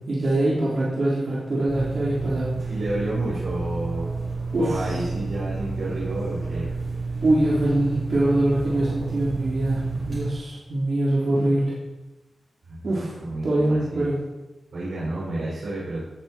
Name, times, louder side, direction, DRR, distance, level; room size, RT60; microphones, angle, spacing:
voice 1, 0.1-2.5 4.5-4.8 7.2-11.8 12.8-13.1 13.4-14.1, right 1 dB, 60° right, -7 dB, 3.5 m, -23 dB
sound 1, 1.7-10.3, right 3 dB, 40° right, 5.0 m, -30 dB
voice 2, 2.7-4.1 4.6-6.7 12.7-12.8 13.2-14.0 14.7-16.0, right 1 dB, 85° right, -7 dB, 4.8 m, -30 dB
17.0 x 8.8 x 4.4 m, 1.1 s
wide cardioid pair, 145°, 0 cm